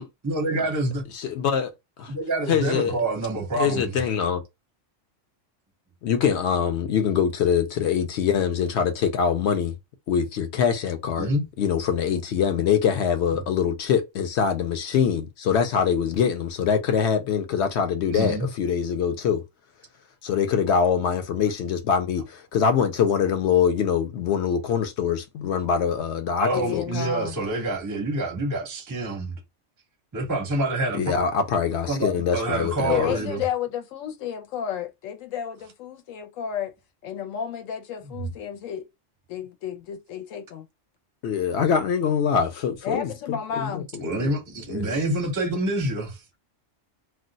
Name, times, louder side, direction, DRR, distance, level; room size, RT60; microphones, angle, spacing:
voice 1, 0.2-1.0 2.1-4.0 11.2-11.4 13.3-13.4 18.1-18.5 26.4-29.4 30.1-31.1 31.9-33.4 38.0-38.3 44.0-46.2, right 2 dB, 25° right, 0.5 m, -27 dB
voice 2, 1.1-1.7 2.0-2.1 2.5-3.0 3.6-4.4 6.0-9.7 10.1-11.3 11.6-19.4 20.2-27.1 30.9-33.2 41.2-44.3 44.7-44.9, left 7 dB, 65° left, 0.8 m, -24 dB
voice 3, 26.5-27.4 32.9-36.7 37.0-38.9 39.3-40.7 42.8-43.9, left 9 dB, 85° left, 1.0 m, -31 dB
2.4 x 2.2 x 3.8 m
omnidirectional pair, 1.3 m